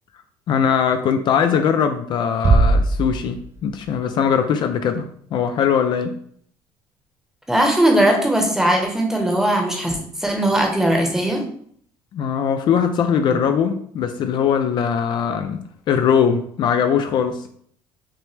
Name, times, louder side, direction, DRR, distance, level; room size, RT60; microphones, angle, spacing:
voice 1, 0.5-5.0 5.3-6.1 12.1-17.5, left 7 dB, 55° left, 7 dB, 0.4 m, -20 dB
Bass drum, 2.4-3.9, right 3 dB, 25° right, 0.4 m, -18 dB
voice 2, 7.5-11.4, right 1 dB, 5° right, 1 dB, 0.9 m, -19 dB
5.9 x 2.1 x 3.2 m, 0.62 s
cardioid pair, 115°, 9 cm